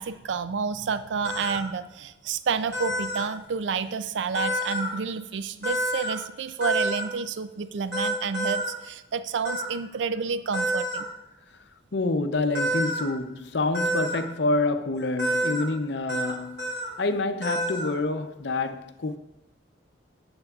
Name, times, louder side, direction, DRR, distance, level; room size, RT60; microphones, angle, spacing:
voice 1, 0.0-11.1, right 5 dB, 75° right, 0.4 m, -30 dB
sound 1, 1.2-1.6 2.7-3.2 4.3-4.9 5.6-6.1 6.6-7.0 7.9-8.7 9.4-9.7 10.5-11.0 12.5-13.0 13.7-14.2 15.2-15.6 16.1-16.3 16.6-16.9 17.4-17.9, equal, 60° right, 2.3 m, -28 dB
voice 2, 11.9-19.2, left 2 dB, 65° left, 0.6 m, -27 dB
13.5 x 7.9 x 2.4 m
head